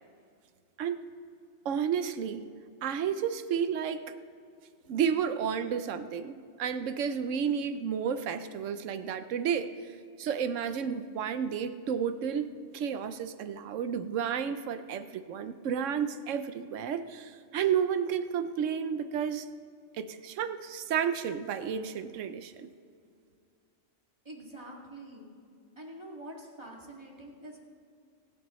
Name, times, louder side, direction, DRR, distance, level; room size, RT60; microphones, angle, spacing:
voice 1, 1.6-2.5 2.8-4.1 4.9-9.7 10.2-12.5 12.7-19.5 20.0-22.7, right 7 dB, 75° right, 11 dB, 1.1 m, -31 dB
voice 2, 24.2-25.3 25.8-27.6, right 1 dB, 20° right, -2 dB, 2.3 m, -45 dB
25.0 x 9.7 x 3.1 m, 2.3 s
omnidirectional pair, 1.3 m